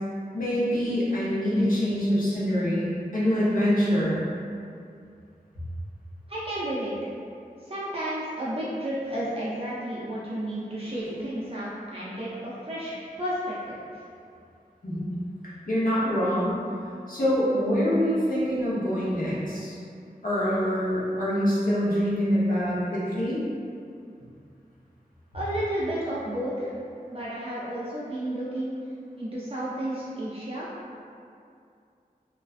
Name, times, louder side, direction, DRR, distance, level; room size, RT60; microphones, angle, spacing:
voice 1, 0.3-4.2 14.8-15.2 15.7-16.6 17.1-19.8 20.2-23.4, equal, 60° left, -9 dB, 0.8 m, -25 dB
voice 2, 6.3-7.0 7.6-14.0 24.2-24.3 25.3-26.7 27.1-28.7 29.2-30.7, right 1 dB, 40° right, -8 dB, 0.4 m, -32 dB
2.4 x 2.2 x 2.4 m, 2.4 s
wide cardioid pair, 60°, 16 cm